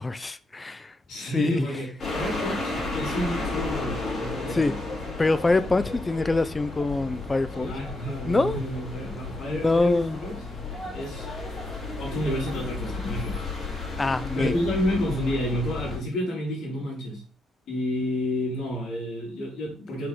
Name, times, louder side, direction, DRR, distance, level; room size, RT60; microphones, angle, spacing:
voice 1, 0.0-1.0 1.3-1.7 4.5-4.7 5.2-7.7 8.2-8.6 9.5-10.2 14.0-14.5, left 3 dB, 20° left, 0.5 m, -24 dB
voice 2, 1.1-4.8 7.5-10.4 10.9-11.3 12.0-13.4 14.3-17.2 17.7-20.1, equal, 75° left, 3.5 m, -30 dB
sound 1, 2.0-16.0, left 3 dB, 50° left, 3.6 m, -33 dB
6.0 x 4.8 x 3.6 m
cardioid pair, 90°, 0 cm